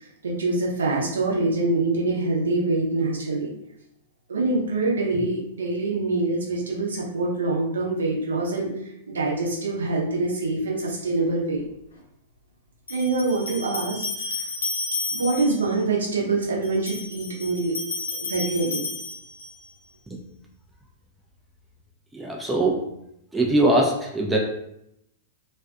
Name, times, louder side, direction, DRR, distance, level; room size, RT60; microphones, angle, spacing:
voice 1, 0.2-3.5 4.3-8.7 9.1-11.6 12.9-14.0 14.3-14.4 15.1-17.7 18.1-18.9, right 2 dB, 70° right, -3 dB, 0.7 m, -25 dB
sound 1, 11.6-11.7 12.9-15.7 16.6-19.7, left 3 dB, 75° left, 0.7 m, -32 dB
voice 2, 22.1-22.8 23.3-24.4, right 1 dB, 10° right, -1 dB, 0.4 m, -22 dB
2.5 x 2.4 x 2.2 m, 0.79 s
figure-of-eight pair, 100°, 0 cm